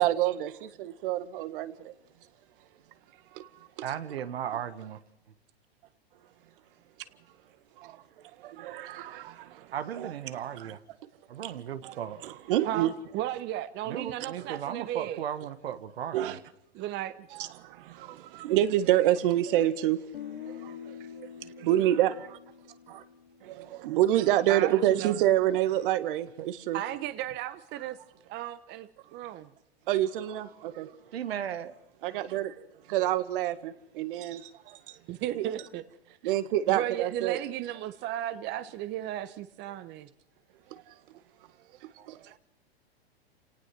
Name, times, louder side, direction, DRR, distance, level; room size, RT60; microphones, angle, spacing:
voice 1, 0.0-1.9 3.3-3.5 7.8-8.0 8.4-10.1 10.6-10.7 11.4-11.6 11.8-12.9 14.4-14.5 16.1-16.4 17.3-20.0 20.4-22.1 23.5-26.8 29.9-30.9 32.0-35.0 35.3-35.5 36.2-37.4 40.7-40.9 42.1-42.2, right 13 dB, 55° right, 1.9 m, -28 dB
voice 2, 3.8-5.0 9.7-10.8 11.3-12.2 13.9-16.4 26.4-26.5 31.1-31.7 42.0-42.1, right 9 dB, 70° right, 1.7 m, -36 dB
voice 3, 12.6-15.2 16.7-17.5 24.5-25.2 26.7-28.0 28.3-29.5 35.1-35.8 36.2-36.3 36.7-40.1 42.1-42.3, right 13 dB, 35° right, 1.2 m, -35 dB
Guitar, 20.1-24.1, left 9 dB, 70° left, 2.1 m, -45 dB
29.0 x 18.5 x 6.2 m
hypercardioid pair, 115°, 32 cm